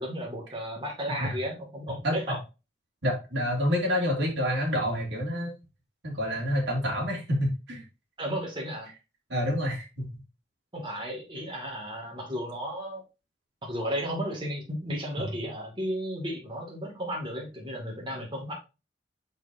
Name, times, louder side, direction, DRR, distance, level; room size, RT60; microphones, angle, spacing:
voice 1, 0.0-2.4 8.2-8.9 10.7-13.0 13.6-18.5, equal, 25° right, -2 dB, 2.3 m, -34 dB
voice 2, 2.0-2.4 3.0-5.5 6.0-7.8 9.3-10.1 15.2-15.3, equal, 75° right, 0 dB, 2.5 m, -28 dB
6.7 x 6.2 x 2.7 m, 0.28 s
head